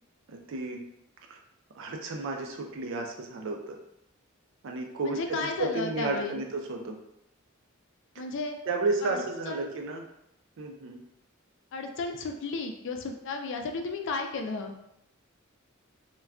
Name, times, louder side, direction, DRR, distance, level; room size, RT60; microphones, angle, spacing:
voice 1, 0.3-0.8 1.3-1.4 1.8-3.8 4.6-7.0 8.7-10.1 10.6-11.0, right 3 dB, 65° right, 3 dB, 0.4 m, -32 dB
voice 2, 5.0-6.4 8.2-8.6 9.0-9.7 11.7-14.7, left 3 dB, 60° left, 4 dB, 0.4 m, -34 dB
2.2 x 2.2 x 3.5 m, 0.83 s
head